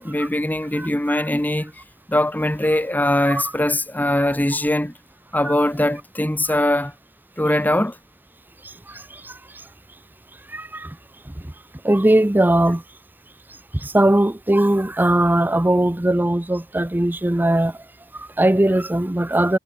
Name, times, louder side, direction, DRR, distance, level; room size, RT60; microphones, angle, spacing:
voice 1, 0.0-1.7 2.1-4.9 5.3-6.9 7.4-8.0, left 1 dB, 10° left, 1.1 m, -21 dB
voice 2, 0.8-1.2 3.3-3.4 5.4-5.5 8.9-9.4 10.5-11.0 11.8-12.8 13.7-17.8 18.1-19.6, right 1 dB, 10° right, 0.5 m, -19 dB
head